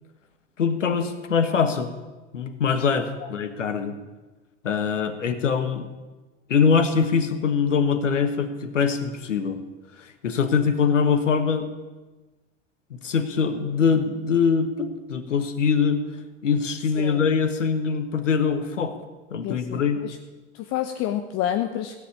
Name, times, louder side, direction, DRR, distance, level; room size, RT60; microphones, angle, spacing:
voice 1, 0.6-1.9 2.3-3.9 4.6-5.9 6.5-9.6 10.0-11.7 13.0-16.0 16.4-19.0 19.3-20.0, left 6 dB, 85° left, 8 dB, 1.5 m, -23 dB
voice 2, 19.4-20.2 20.5-22.0, left 11 dB, 45° left, 5 dB, 1.1 m, -29 dB
17.0 x 7.2 x 8.6 m, 1.2 s
hypercardioid pair, 85°, 36 cm